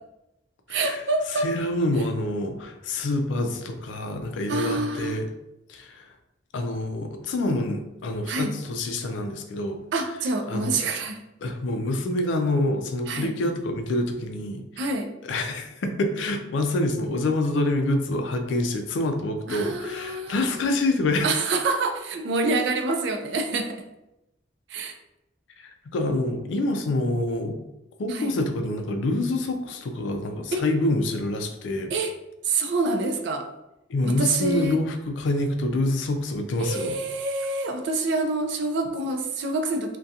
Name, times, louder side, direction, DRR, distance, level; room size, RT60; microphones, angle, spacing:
voice 1, 0.7-1.5 4.5-5.1 8.3-8.6 9.9-11.2 13.1-13.3 14.8-15.1 19.5-20.6 21.2-23.8 24.7-25.0 28.1-28.3 30.5-30.6 31.9-32.1 32.4-33.5 34.0-34.8 36.6-40.0, right 3 dB, 65° right, 5 dB, 0.4 m, -27 dB
voice 2, 1.3-5.3 5.7-6.0 6.5-9.8 10.5-10.7 11.4-14.6 15.2-21.3 25.6-27.6 28.0-31.9 33.9-36.9, left 2 dB, 80° left, 5 dB, 0.4 m, -26 dB
2.4 x 2.2 x 2.7 m, 0.91 s
head